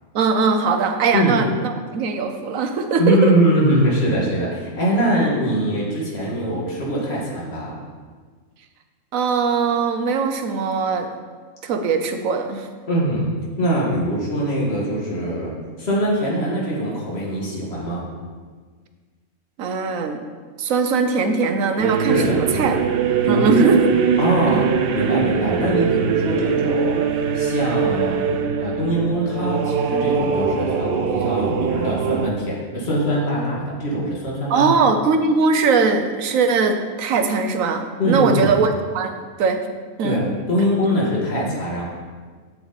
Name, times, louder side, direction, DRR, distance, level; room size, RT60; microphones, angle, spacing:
voice 1, 0.1-3.3 9.1-11.1 11.6-12.7 19.6-20.2 20.6-22.8 23.3-23.8 24.5-24.7 34.5-39.7 40.0-40.2, right 4 dB, 90° right, 7 dB, 1.2 m, -20 dB
voice 2, 3.0-7.8 12.9-13.3 13.6-15.5 15.8-18.0 22.1-22.8 23.2-23.8 24.2-24.7 24.9-27.0 27.3-28.2 28.6-34.8 38.0-38.6 40.0-41.9, right 1 dB, 55° left, -4 dB, 2.1 m, -22 dB
sound 1, 21.8-32.3, right 7 dB, 60° right, 0.7 m, -22 dB
7.7 x 7.6 x 4.1 m, 1.5 s
omnidirectional pair, 1.4 m